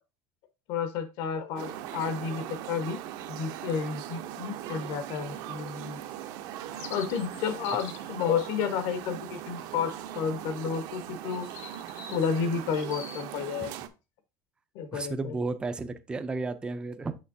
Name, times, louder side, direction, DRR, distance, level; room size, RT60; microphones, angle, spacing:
voice 1, 0.7-3.0 3.3-6.0 6.9-11.5 12.1-13.7 14.7-15.4, left 6 dB, 65° left, 10 dB, 1.2 m, -31 dB
sound 1, 1.6-13.9, right 11 dB, 55° right, 0.7 m, -40 dB
sound 2, 6.7-8.1 11.3-13.2, left 5 dB, 40° left, 1.0 m, -45 dB
voice 2, 14.9-17.2, right 3 dB, 10° right, 9 dB, 0.4 m, -33 dB
6.5 x 6.2 x 2.7 m, 0.27 s
cardioid pair, 160°, 8 cm